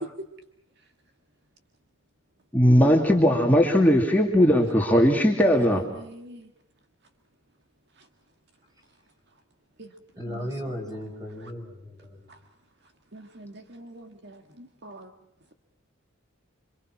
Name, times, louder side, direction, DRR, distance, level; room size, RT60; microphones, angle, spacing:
voice 1, 2.5-5.8, equal, 10° left, 0 dB, 2.4 m, -19 dB
voice 2, 5.4-6.5 8.0-8.1 9.8-9.9 10.3-10.8 11.4-11.5 12.3-12.4 13.1-15.1, right 1 dB, 55° right, 6 dB, 1.8 m, -44 dB
voice 3, 10.2-12.2, equal, 20° right, 1 dB, 6.2 m, -36 dB
27.5 x 25.5 x 6.1 m, 0.75 s
head